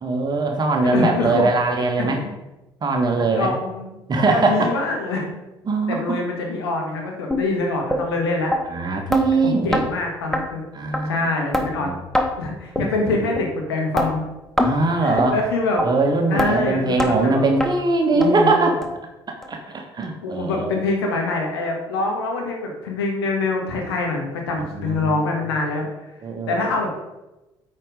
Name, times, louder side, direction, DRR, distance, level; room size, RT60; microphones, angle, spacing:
voice 1, 0.0-2.2 2.8-3.5 4.1-4.7 5.7-6.2 8.7-9.8 10.7-11.3 11.7-12.0 14.6-15.4 15.8-18.8 19.3-20.7 24.7-25.1 26.2-26.6, right 3 dB, 30° right, 3 dB, 1.2 m, -21 dB
voice 2, 0.8-1.5 2.0-2.3 3.2-3.9 4.3-5.3 5.9-8.5 9.4-10.6 11.1-11.9 12.4-14.3 15.0-15.8 16.3-17.4 18.1-18.7 20.2-25.9 26.5-26.9, left 3 dB, 75° left, 1 dB, 1.5 m, -25 dB
sound 1, 7.3-7.4 7.9-8.0 8.5-8.6 9.1-9.2 9.7-9.9 10.3-10.4 10.9-11.0 11.5-11.7 12.1-12.3 12.8-12.9 13.4-13.5 14.0-14.1 14.6-14.7 15.2-15.3 15.8-15.9 16.4-16.5 17.0-17.1 17.6-17.7 18.2-18.3 18.8-18.9 19.4-19.5 20.0-20.1, left 1 dB, 5° left, 1.2 m, -22 dB
9.0 x 4.3 x 5.0 m, 1.0 s
figure-of-eight pair, 55°, 13 cm